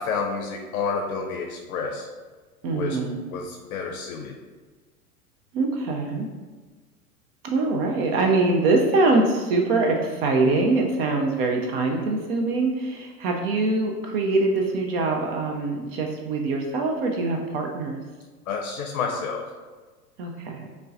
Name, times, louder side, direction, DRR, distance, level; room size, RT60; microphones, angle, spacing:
voice 1, 0.0-2.1 2.7-3.0 3.3-4.3 18.5-19.5, left 5 dB, 65° left, 1 dB, 0.6 m, -29 dB
voice 2, 2.6-3.2 5.5-6.3 7.4-18.0 20.2-20.7, right 3 dB, 40° right, 1 dB, 0.5 m, -23 dB
5.2 x 2.1 x 2.5 m, 1.4 s
figure-of-eight pair, 95°, 45 cm